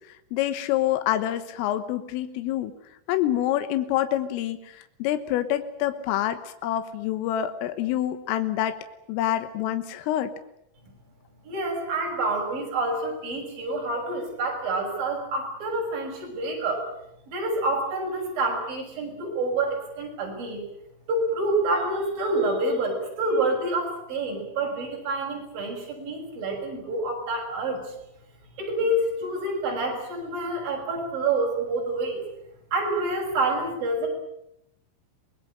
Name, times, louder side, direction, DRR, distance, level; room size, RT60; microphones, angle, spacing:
voice 1, 0.3-2.7 3.1-8.8 9.1-10.3, left 12 dB, 80° left, 9 dB, 3.9 m, -27 dB
voice 2, 11.4-16.8 17.3-20.7 21.1-27.9 28.6-32.2 32.7-34.1, right 2 dB, 45° right, 0 dB, 8.2 m, -27 dB
25.0 x 20.5 x 8.9 m, 0.78 s
omnidirectional pair, 5.9 m